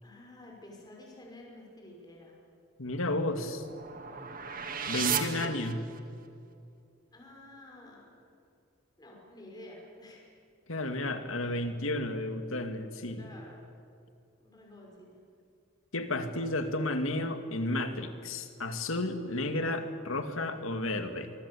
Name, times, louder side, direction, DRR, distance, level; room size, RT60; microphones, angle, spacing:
voice 1, 0.0-2.3 4.9-5.6 7.1-8.3 9.0-10.4 10.8-11.1 13.1-13.7 14.4-15.2, left 1 dB, 20° left, -2 dB, 5.8 m, -50 dB
voice 2, 2.8-3.7 4.9-5.8 10.7-13.3 15.9-21.3, left 2 dB, 85° left, 7 dB, 2.2 m, -32 dB
sound 1, 2.8-6.3, right 7 dB, 45° right, 2.0 m, -36 dB
25.5 x 22.5 x 8.6 m, 2.5 s
head